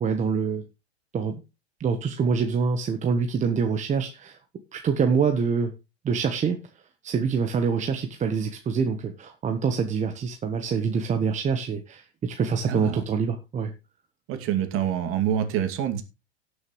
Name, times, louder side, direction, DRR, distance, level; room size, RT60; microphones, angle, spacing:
voice 1, 0.0-0.6 1.1-1.4 1.8-4.4 4.7-5.7 6.0-6.6 7.0-13.7, right 5 dB, 20° right, 1.1 m, -25 dB
voice 2, 12.7-13.0 14.3-16.0, right 9 dB, 40° right, 2.4 m, -26 dB
18.0 x 6.5 x 3.1 m
hypercardioid pair, 100°, 33 cm